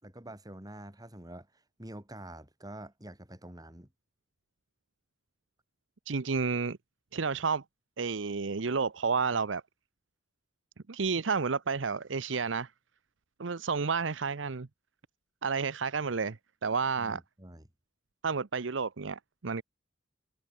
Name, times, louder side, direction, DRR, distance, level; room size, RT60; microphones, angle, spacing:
voice 1, 0.0-1.5 1.8-3.9 17.0-17.7, right 1 dB, 20° right, 4.5 m, -46 dB
voice 2, 6.1-6.8 7.1-7.6 8.0-9.6 10.9-12.7 13.4-14.7 15.4-17.2 18.2-19.6, right 5 dB, 90° right, 0.8 m, -31 dB
head